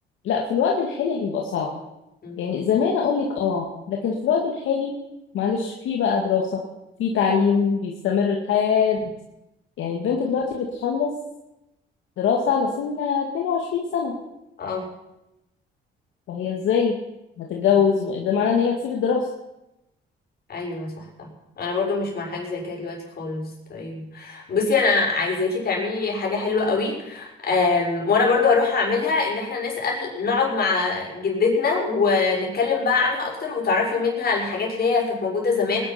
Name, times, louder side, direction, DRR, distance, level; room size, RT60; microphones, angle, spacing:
voice 1, 0.2-1.7 2.4-4.9 5.3-6.6 7.0-9.1 9.8-11.1 12.2-14.2 16.3-17.0 17.4-19.2, left 6 dB, 80° left, 0 dB, 2.1 m, -23 dB
voice 2, 2.2-2.6 14.6-14.9 20.5-35.9, left 4 dB, 50° left, -1 dB, 6.1 m, -23 dB
20.0 x 11.0 x 6.0 m, 0.92 s
cardioid pair, 90°, 20 cm